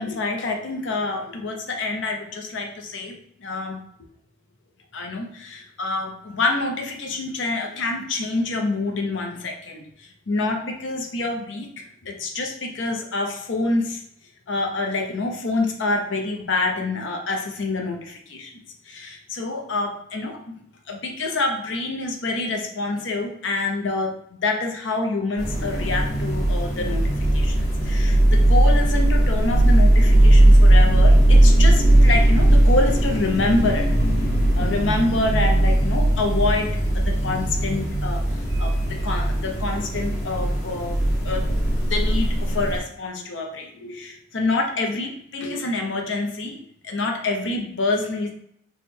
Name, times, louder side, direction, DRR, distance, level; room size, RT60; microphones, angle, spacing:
voice 1, 0.0-3.8 4.9-14.0 14.5-18.5 18.8-20.6 20.9-27.0 27.3-33.9 34.5-41.6 41.9-48.3, left 2 dB, 80° left, 2 dB, 0.6 m, -27 dB
sound 1, 25.4-42.8, right 1 dB, 55° left, 1.4 m, -18 dB
3.4 x 2.2 x 4.3 m, 0.70 s
head